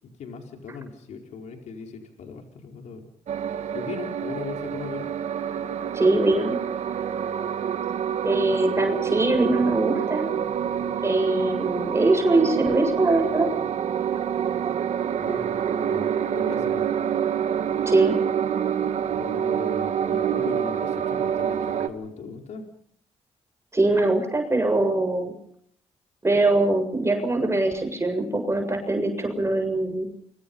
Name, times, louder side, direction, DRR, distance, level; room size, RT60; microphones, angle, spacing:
voice 1, 0.0-3.1 3.7-5.1 15.2-15.5 15.8-16.9 19.0-22.6, left 5 dB, 80° left, 3 dB, 4.8 m, -38 dB
sound 1, 3.3-21.9, right 8 dB, 75° right, 2.0 m, -27 dB
voice 2, 5.9-6.6 8.2-10.3 11.0-13.5 17.9-18.2 23.7-25.3 26.2-30.1, right 2 dB, 25° right, 5 dB, 7.3 m, -22 dB
29.5 x 25.0 x 5.6 m, 0.64 s
cardioid pair, 70°, 12 cm